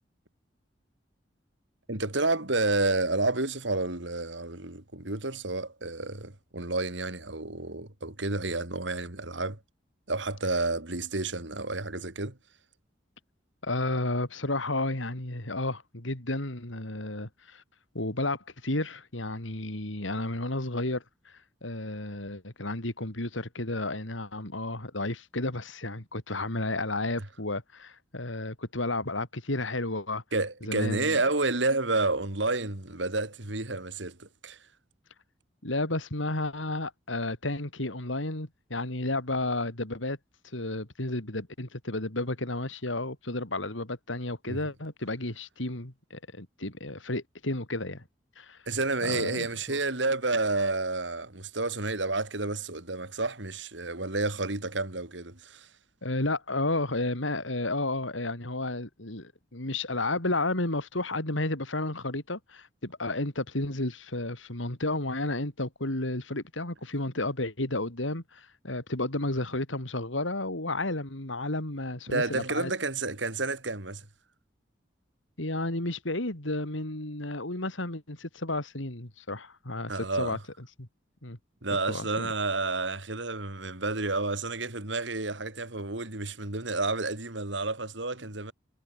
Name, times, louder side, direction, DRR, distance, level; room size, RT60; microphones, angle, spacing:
voice 1, 1.9-9.6 10.1-12.4 30.3-34.7 44.5-44.7 48.7-55.7 72.1-74.1 79.9-80.4 81.6-88.5, right 3 dB, 75° right, 3.1 m, -30 dB
voice 2, 13.6-17.6 17.9-30.2 30.7-31.2 35.6-40.2 40.4-48.0 48.4-48.6 49.0-49.8 56.0-72.7 75.4-79.9 80.2-80.4 80.8-80.9 81.2-81.4 81.9-82.3, left 2 dB, 90° left, 3.8 m, -32 dB
head